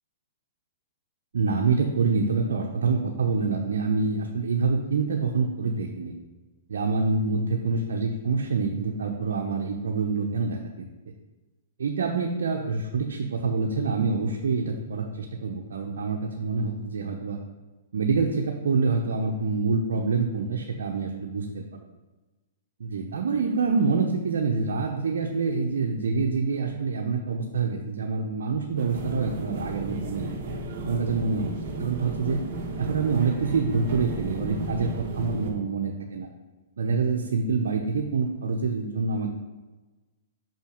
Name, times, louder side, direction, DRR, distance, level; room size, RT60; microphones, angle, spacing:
voice 1, 1.3-6.1 6.7-10.9 11.8-17.4 17.9-21.6 22.8-30.3 30.8-31.5 31.8-32.4 32.8-36.3 36.8-39.3, right 4 dB, 80° right, 1 dB, 0.8 m, -26 dB
sound 1, 28.8-35.5, right 2 dB, 45° right, 1.2 m, -34 dB
5.7 x 5.4 x 5.2 m, 1.2 s
hypercardioid pair, 140°, 0 cm